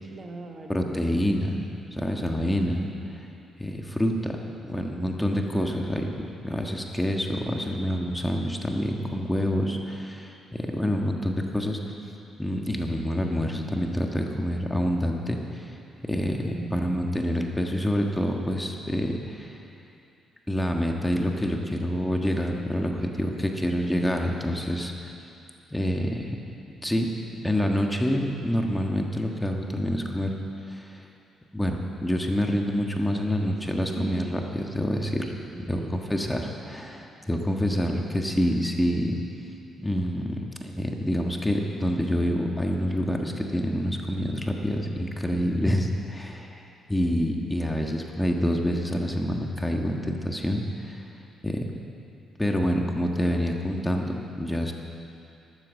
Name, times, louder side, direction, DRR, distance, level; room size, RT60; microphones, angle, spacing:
voice 1, 0.0-1.2 16.5-16.9 33.5-33.6 34.0-34.5 35.5-36.1, right 3 dB, 35° right, 3 dB, 1.5 m, -38 dB
voice 2, 0.7-1.6 1.9-2.9 3.6-4.4 4.7-11.8 12.4-15.7 16.0-19.6 20.5-25.1 25.7-26.4 26.8-27.1 27.4-30.3 30.7-31.0 31.5-35.3 35.7-39.2 39.8-51.0 51.4-51.7 52.4-54.7, equal, 10° left, 2 dB, 1.5 m, -27 dB
12.5 x 12.0 x 7.5 m, 2.7 s
cardioid pair, 90°, 0 cm